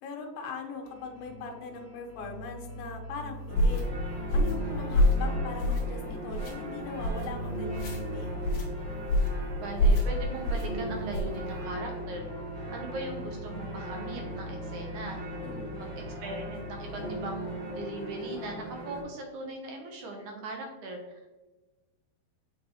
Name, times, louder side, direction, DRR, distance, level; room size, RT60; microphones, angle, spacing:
voice 1, 0.0-3.8 4.3-8.4 15.4-15.9, left 4 dB, 75° left, 2 dB, 2.5 m, -40 dB
sound 1, 0.8-17.5, equal, 35° left, 2.0 m, -42 dB
sound 2, 3.5-3.8 4.3-4.6 4.9-5.2 5.6-6.0 6.3-6.5 7.0-7.3 7.7-8.0 8.4-8.7 9.1-9.4 9.8-10.1 10.4-10.7 11.1-11.4, left 1 dB, 60° left, 1.9 m, -25 dB
sound 3, 3.5-19.0, equal, 45° right, 2.5 m, -39 dB
voice 2, 9.6-12.3 12.7-15.2 15.8-21.0, right 2 dB, 75° right, 2 dB, 1.8 m, -39 dB
6.8 x 5.1 x 2.8 m, 1.2 s
omnidirectional pair, 4.3 m